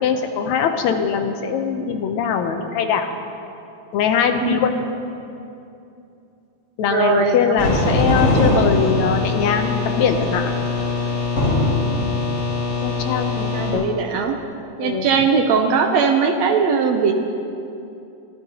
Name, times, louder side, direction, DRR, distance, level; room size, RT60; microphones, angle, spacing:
voice 1, 0.0-3.1 3.9-4.8 6.8-10.5 12.8-14.1 14.8-15.1, left 7 dB, 75° left, 6 dB, 2.0 m, -21 dB
voice 2, 6.9-7.6 13.4-14.4 14.8-17.1, right 5 dB, 70° right, 4 dB, 1.7 m, -19 dB
sound 1, 7.6-13.7, left 2 dB, 35° left, 4.6 m, -21 dB
24.0 x 15.5 x 2.9 m, 2.7 s
omnidirectional pair, 3.6 m